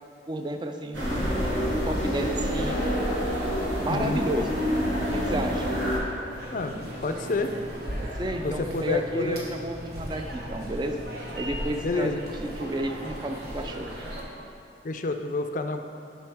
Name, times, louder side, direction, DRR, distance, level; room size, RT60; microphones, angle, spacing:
voice 1, 0.3-1.4 1.7-2.8 3.8-4.6 5.1-5.7 8.0-11.0 11.3-12.3 12.6-13.9, right 1 dB, 25° right, 5 dB, 0.4 m, -32 dB
sound 1, 0.9-6.0, equal, 85° right, 1.8 m, -27 dB
voice 2, 3.9-4.2 6.5-6.7 7.0-7.5 8.4-9.4 11.8-12.2 14.8-15.8, left 3 dB, 45° left, 6 dB, 0.4 m, -28 dB
sound 2, 6.3-14.2, equal, 55° right, 1.1 m, -37 dB
10.0 x 5.5 x 3.5 m, 2.6 s
head